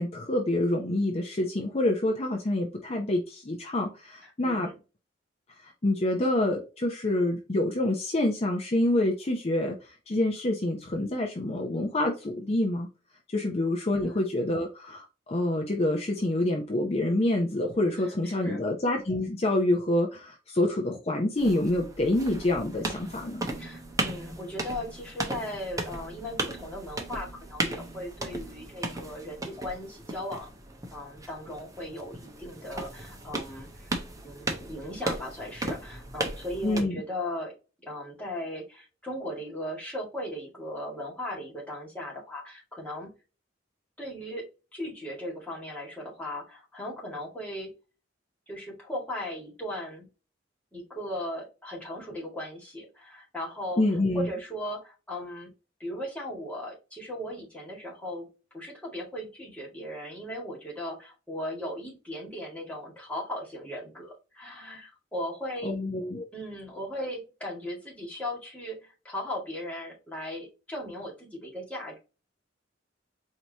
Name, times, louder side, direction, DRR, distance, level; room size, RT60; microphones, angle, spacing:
voice 1, 0.0-4.7 5.6-12.9 13.3-23.4 36.6-37.0 53.8-54.3 65.6-66.2, left 1 dB, 35° left, 2 dB, 0.6 m, -27 dB
voice 2, 4.2-4.8 14.0-14.2 18.0-18.7 23.6-30.5 30.9-37.5 37.8-43.1 44.0-47.7 48.5-50.1 50.7-53.8 54.1-55.5 55.8-58.3 58.5-65.7 66.3-72.0, left 1 dB, 5° left, -2 dB, 1.9 m, -37 dB
sound 1, 21.4-36.8, right 2 dB, 20° right, 0.8 m, -36 dB
4.7 x 2.8 x 2.8 m, 0.31 s
head